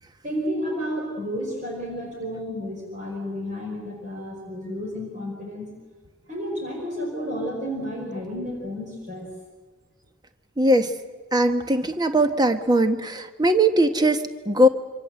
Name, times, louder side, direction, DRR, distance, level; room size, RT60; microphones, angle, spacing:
voice 1, 0.2-5.7 6.3-9.3, equal, 35° right, -1 dB, 5.0 m, -31 dB
voice 2, 10.6-11.0 11.3-14.7, right 1 dB, 20° right, 8 dB, 1.3 m, -20 dB
26.5 x 25.0 x 7.8 m, 1.4 s
head